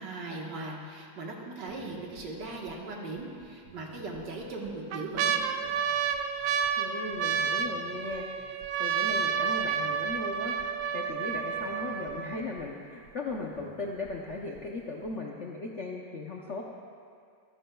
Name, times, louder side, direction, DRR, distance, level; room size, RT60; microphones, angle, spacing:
voice 1, 0.0-5.4, right 2 dB, 65° right, -1 dB, 2.0 m, -39 dB
sound 1, 1.7-2.2 2.7-2.8 3.7-4.2 4.7-12.6 13.3-13.4 13.6-14.1 14.6-14.7, right 7 dB, 80° right, 1.3 m, -30 dB
voice 2, 6.8-8.5 8.8-10.5 10.9-16.6, left 3 dB, 55° left, -2 dB, 0.8 m, -37 dB
24.5 x 10.5 x 2.3 m, 2.2 s
omnidirectional pair, 2.1 m